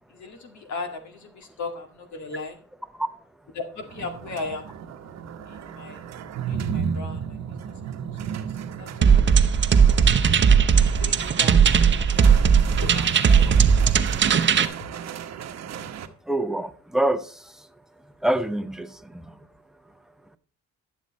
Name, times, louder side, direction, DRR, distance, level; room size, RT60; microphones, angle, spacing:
voice 1, 0.1-2.6 3.8-4.6 5.5-6.1 6.3-7.4 8.2-8.4 8.8-9.4 11.0-11.7 12.0-13.5, left 3 dB, 70° left, 2.0 m, -37 dB
sound 1, 3.8-16.1, right 7 dB, 60° right, 1.0 m, -34 dB
sound 2, 9.0-14.7, right 6 dB, 40° right, 0.7 m, -18 dB
voice 2, 16.3-17.3 18.2-18.9, right 1 dB, ahead, 0.7 m, -24 dB
11.5 x 7.4 x 4.2 m
cardioid pair, 90°, 30 cm